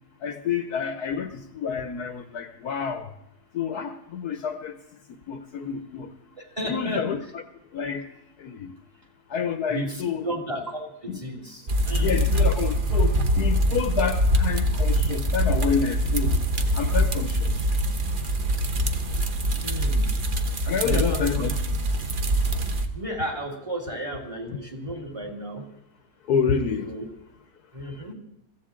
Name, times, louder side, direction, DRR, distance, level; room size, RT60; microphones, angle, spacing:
voice 1, 0.2-3.1 3.5-4.7 5.3-6.1 6.7-7.2 7.7-8.0 8.4-8.7 9.3-10.3 11.1-11.2 12.0-16.4 16.7-17.5 20.7-21.5 26.3-26.9, left 6 dB, 65° left, 9 dB, 1.3 m, -28 dB
voice 2, 6.4-7.0 9.7-12.3 19.6-20.1 20.8-21.4 22.9-25.6 26.7-27.1 27.7-28.1, right 1 dB, 20° right, 3 dB, 2.5 m, -33 dB
sound 1, 11.7-22.9, equal, 35° right, 1.0 m, -24 dB
22.5 x 14.5 x 3.7 m, 0.83 s
omnidirectional pair, 1.9 m